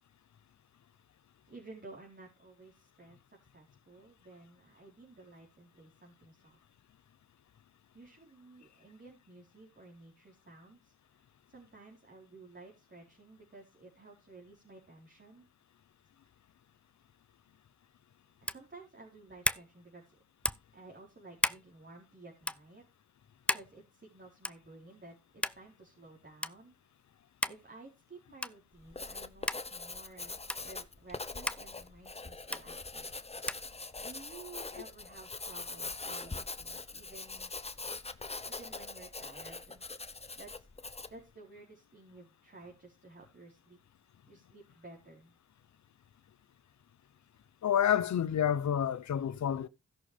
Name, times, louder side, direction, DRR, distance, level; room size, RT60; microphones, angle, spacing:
voice 1, 1.5-6.6 7.9-10.9 11.5-15.5 18.4-20.2 20.7-22.8 23.5-26.8 27.5-33.1 34.0-37.5 38.5-39.8 40.4-40.7 41.1-43.8 44.3-45.3, right 3 dB, 35° right, 4.0 m, -54 dB
sound 1, 18.4-18.7 19.4-19.7 20.4-20.7 21.4-21.6 22.4-22.6 23.5-23.7 24.4-24.7 25.4-25.6 26.4-26.5 27.4-27.6 28.4-28.6 29.5-29.6 30.5-30.6 31.5-31.6 32.5-32.6 33.5-33.7, left 1 dB, 5° left, 0.6 m, -33 dB
Writing, 28.8-41.2, left 3 dB, 20° left, 0.9 m, -43 dB
voice 2, 47.6-49.7, left 9 dB, 70° left, 0.8 m, -29 dB
16.0 x 6.2 x 3.4 m
cardioid pair, 55°, 29 cm